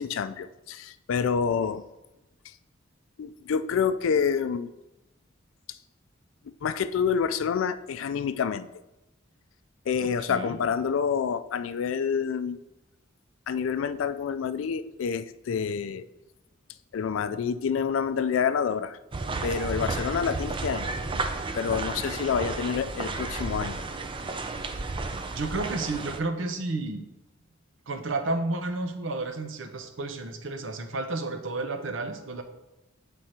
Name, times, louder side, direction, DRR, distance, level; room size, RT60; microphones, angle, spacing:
voice 1, 0.0-1.8 3.2-4.7 6.6-8.7 9.9-12.6 13.5-16.0 16.9-19.0 19.4-20.9 21.5-23.8, left 6 dB, 85° left, 13 dB, 0.4 m, -28 dB
voice 2, 10.0-10.6 25.4-27.0 27.9-32.4, right 2 dB, 75° right, 7 dB, 0.8 m, -31 dB
sound 1, 19.1-26.2, right 3 dB, 25° right, 0.4 m, -32 dB
7.8 x 3.4 x 4.3 m, 0.94 s
head